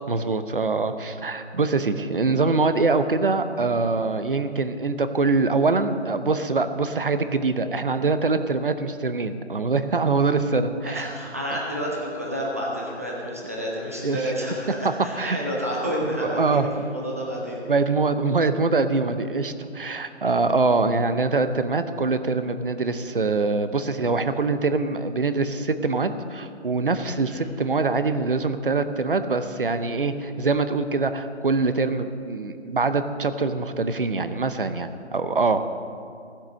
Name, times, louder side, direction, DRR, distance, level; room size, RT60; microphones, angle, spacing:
voice 1, 0.1-11.1 11.5-11.6 14.0-14.2 15.2-15.4 15.8-16.8 17.7-35.7, right 3 dB, 50° right, 10 dB, 0.8 m, -24 dB
voice 2, 10.8-17.6 27.3-27.4, equal, 15° right, -4 dB, 0.9 m, -30 dB
16.0 x 7.4 x 7.5 m, 2.4 s
hypercardioid pair, 175°, 35 cm